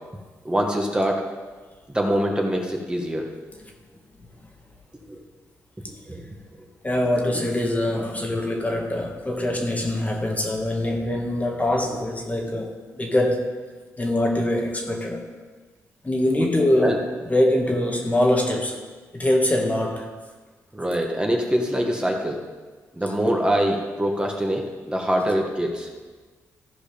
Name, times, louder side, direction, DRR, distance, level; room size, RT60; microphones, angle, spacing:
voice 1, 0.4-1.2 1.9-3.3 5.1-5.2 6.1-6.3 7.3-7.4 11.8-11.9 16.4-17.0 20.7-22.4 22.9-25.9, equal, 15° right, 1 dB, 1.6 m, -24 dB
voice 2, 6.8-13.5 14.0-15.2 16.0-18.8 19.1-20.1, left 1 dB, 25° left, 1 dB, 1.6 m, -23 dB
14.0 x 4.9 x 5.2 m, 1.4 s
cardioid pair, 65°, 6 cm